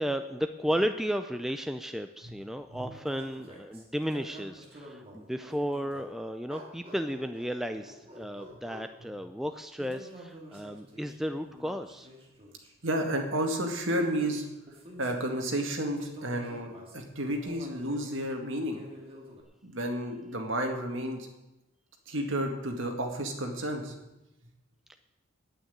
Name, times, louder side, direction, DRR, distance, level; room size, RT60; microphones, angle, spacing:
voice 1, 0.0-12.1 24.9-25.0, equal, ahead, 7 dB, 0.4 m, -34 dB
sound 1, 2.9-6.2 6.5-9.0 9.8-12.7 13.6-15.6 15.9-18.2 18.7-19.4, equal, 25° right, 2.5 m, -48 dB
voice 2, 12.8-14.4 15.0-18.8 19.6-21.3 22.1-24.0, right 1 dB, 60° right, 3 dB, 2.1 m, -31 dB
9.1 x 9.0 x 9.5 m, 0.96 s
head